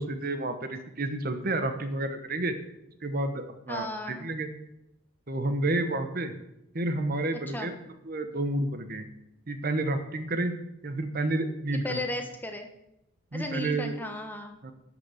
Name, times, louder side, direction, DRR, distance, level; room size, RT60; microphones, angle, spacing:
voice 1, 0.0-2.6 3.0-4.5 5.3-6.3 6.7-7.7 8.0-9.0 9.5-10.5 10.8-12.0 13.3-13.9 14.6-14.7, right 2 dB, 45° right, 8 dB, 1.0 m, -30 dB
voice 2, 3.7-4.3 7.5-7.7 11.8-12.7 13.3-14.6, left 1 dB, 10° left, 4 dB, 1.1 m, -35 dB
11.5 x 6.0 x 7.7 m, 0.85 s
head